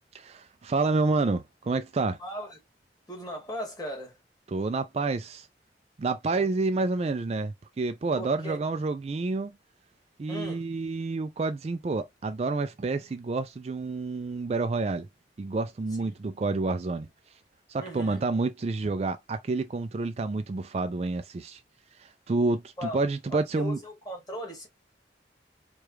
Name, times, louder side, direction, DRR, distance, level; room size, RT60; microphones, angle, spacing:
voice 1, 0.1-2.2 4.5-5.5 6.0-9.6 10.2-15.1 15.4-17.1 17.7-21.6 22.0-23.8, right 3 dB, 35° right, 0.3 m, -29 dB
voice 2, 2.2-2.6 3.1-4.2 6.3-6.5 8.1-8.6 10.3-10.6 16.0-16.1 17.8-18.2 22.8-23.0 23.3-24.7, equal, 20° left, 1.8 m, -38 dB
4.7 x 2.3 x 3.2 m
head